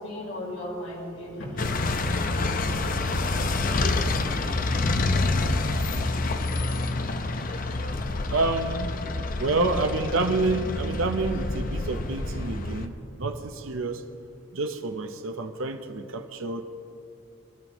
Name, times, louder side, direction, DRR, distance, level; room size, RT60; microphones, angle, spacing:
voice 1, 0.0-3.5, left 1 dB, 80° left, -4 dB, 4.0 m, -38 dB
sound 1, 1.6-12.9, left 2 dB, 45° left, 0.7 m, -27 dB
voice 2, 8.3-8.9 9.4-14.1 14.5-16.6, right 3 dB, 75° right, 6 dB, 0.7 m, -28 dB
22.0 x 12.5 x 3.1 m, 2.7 s
head